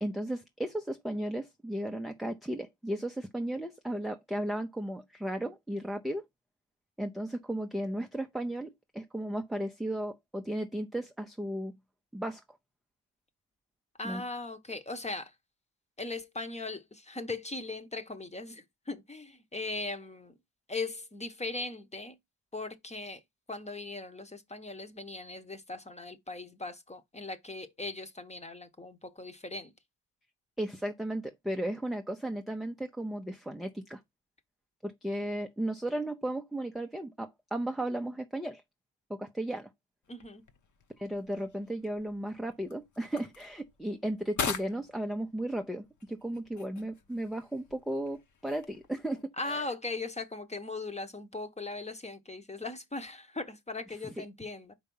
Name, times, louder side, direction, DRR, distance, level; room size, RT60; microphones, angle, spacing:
voice 1, 0.0-6.2 7.0-11.8 12.1-12.4 14.0-14.2 30.6-34.0 34.8-38.6 39.1-39.7 41.0-49.6 54.2-54.3, right 1 dB, ahead, 0.5 m, -35 dB
voice 2, 14.0-15.3 16.0-20.3 20.7-22.2 22.5-23.2 23.5-29.7 40.1-40.4 49.4-54.7, left 3 dB, 15° left, 1.0 m, -39 dB
sound 1, 40.0-49.2, left 6 dB, 40° left, 1.0 m, -43 dB
5.2 x 4.7 x 5.4 m
cardioid pair, 120°, 45 cm